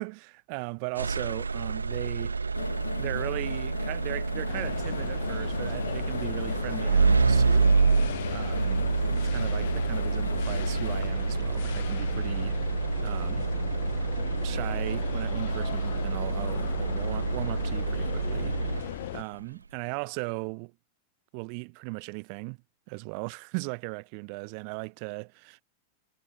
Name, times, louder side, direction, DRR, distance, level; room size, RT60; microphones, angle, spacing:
voice 1, 0.0-2.4 3.0-7.8 8.3-12.6 13.0-13.5 14.4-18.6 19.1-20.7 21.3-22.6 22.9-25.6, right 40 dB or more, 45° right, 1.1 m, -37 dB
sound 1, 1.0-19.2, right 4 dB, 75° right, 1.7 m, -28 dB
sound 2, 2.5-11.0, left 7 dB, 70° left, 1.4 m, -38 dB
sound 3, 4.5-19.2, left 16 dB, 55° left, 0.6 m, -37 dB
figure-of-eight pair, 90°, 0 cm